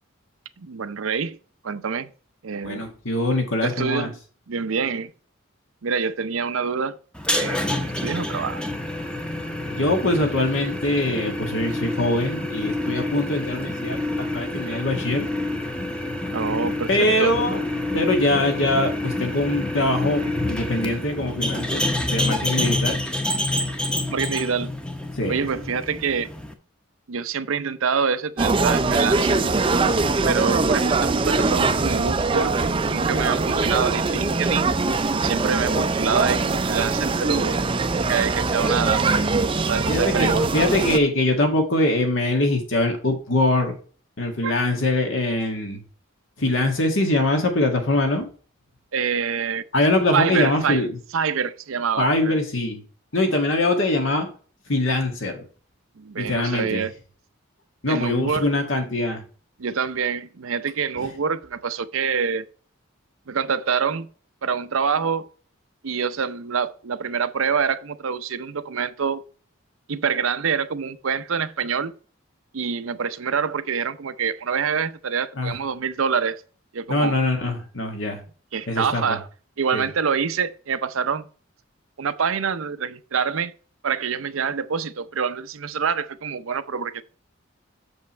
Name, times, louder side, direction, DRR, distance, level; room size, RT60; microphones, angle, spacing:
voice 1, 0.6-1.4 1.6-2.1 2.4-2.8 3.6-4.1 4.5-5.1 5.8-7.0 7.3-8.6 16.3-17.3 24.1-24.7 25.3-26.3 27.1-29.4 30.2-34.7 35.2-37.6 38.0-39.1 39.7-40.5 44.4-44.5 48.9-49.6 50.1-50.8 51.1-52.4 56.0-56.9 57.9-58.5 59.6-62.5 63.3-64.1 64.4-65.3 65.8-69.2 69.9-71.9 72.5-76.4 76.7-77.2 78.5-79.3 79.6-81.2 82.0-83.5 83.8-87.0, right 6 dB, 85° right, 0.6 m, -26 dB
voice 2, 2.6-4.1 9.7-15.3 16.9-17.6 17.9-21.8 22.1-23.0 25.2-25.4 39.9-43.7 44.2-45.8 46.4-48.3 49.7-50.9 52.0-52.8 53.1-54.3 54.7-55.4 56.2-56.8 57.8-59.2 75.4-75.5 76.9-78.2 78.7-79.2 79.7-79.9, left 2 dB, 70° left, 2.0 m, -23 dB
sound 1, 7.1-26.5, left 1 dB, 5° left, 0.8 m, -28 dB
sound 2, 28.4-41.0, right 3 dB, 25° right, 0.4 m, -22 dB
7.1 x 5.3 x 4.4 m
head